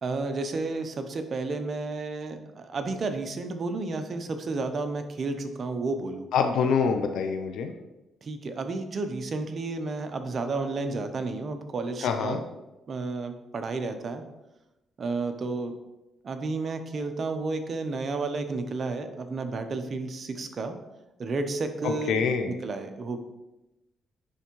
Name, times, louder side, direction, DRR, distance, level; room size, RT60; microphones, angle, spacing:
voice 1, 0.0-6.3 8.2-12.4 12.9-14.2 15.0-15.7 16.2-20.8 21.2-22.2 22.4-23.2, right 3 dB, 45° right, 7 dB, 0.8 m, -31 dB
voice 2, 6.3-7.7 12.0-12.4 21.8-22.5, left 6 dB, 80° left, 6 dB, 0.5 m, -25 dB
10.0 x 3.4 x 3.1 m, 0.97 s
cardioid pair, 90°, 0 cm